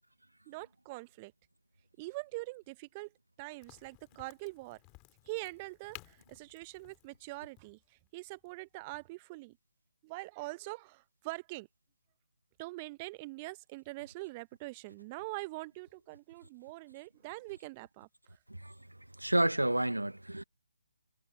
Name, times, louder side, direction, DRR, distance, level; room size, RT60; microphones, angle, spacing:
voice 1, 0.5-1.3 2.0-3.1 3.4-4.8 5.3-9.6 10.0-11.7 12.6-18.1, right 23 dB, 20° right, 0.7 m, -43 dB
Crack, 3.6-9.1, left 27 dB, 15° left, 2.6 m, -57 dB
voice 2, 19.2-20.4, right 1 dB, 85° right, 0.8 m, -29 dB
figure-of-eight pair, 150°, 0 cm